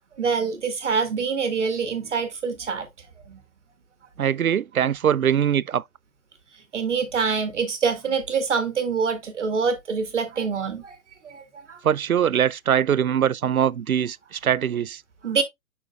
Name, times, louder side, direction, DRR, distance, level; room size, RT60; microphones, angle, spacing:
voice 1, 0.2-2.9 3.3-3.4 6.7-11.0 11.2-11.8 15.2-15.4, right 5 dB, 55° right, 1.7 m, -25 dB
voice 2, 4.2-5.8 11.8-15.0, right 9 dB, 80° right, 0.5 m, -22 dB
7.5 x 5.9 x 2.3 m
figure-of-eight pair, 125°, 42 cm